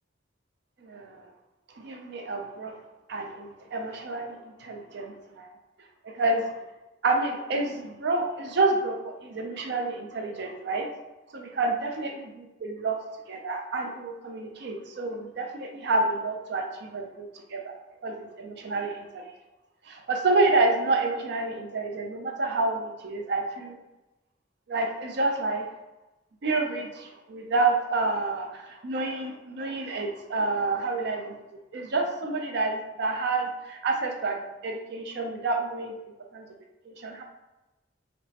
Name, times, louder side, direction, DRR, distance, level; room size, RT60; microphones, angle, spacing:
voice 1, 0.8-1.2 1.7-2.8 3.1-5.5 6.0-6.5 7.0-10.9 11.3-13.0 13.3-17.7 18.0-19.2 19.9-23.8 24.7-25.7 26.4-31.3 31.7-35.9 36.3-36.4 36.9-37.2, right 3 dB, 60° right, 3 dB, 0.5 m, -29 dB
5.1 x 2.0 x 2.8 m, 1.0 s
head